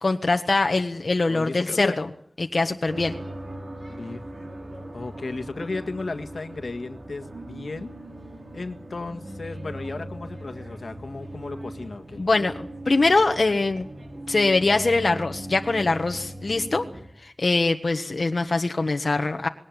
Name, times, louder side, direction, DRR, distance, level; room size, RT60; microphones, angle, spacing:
voice 1, 0.0-2.1 2.4-3.1 12.2-13.9 14.3-16.8 17.2-19.5, left 3 dB, 70° left, 5 dB, 1.4 m, -23 dB
voice 2, 1.3-2.0 3.9-4.2 4.9-7.9 8.5-12.2, left 3 dB, 90° left, 7 dB, 1.7 m, -34 dB
sound 1, 2.9-17.0, right 1 dB, 70° right, 6.3 m, -39 dB
21.0 x 18.0 x 9.1 m, 0.63 s
wide cardioid pair, 60°, 0 cm